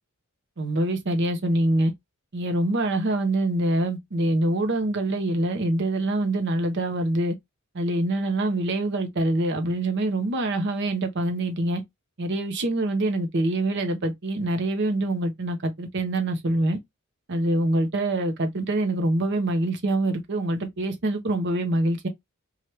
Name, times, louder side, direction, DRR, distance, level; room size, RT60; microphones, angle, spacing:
voice 1, 0.6-1.9 2.3-7.3 7.7-11.8 12.2-16.8 17.3-22.1, right 1 dB, 55° right, 0.7 m, -25 dB
2.9 x 2.4 x 3.0 m
head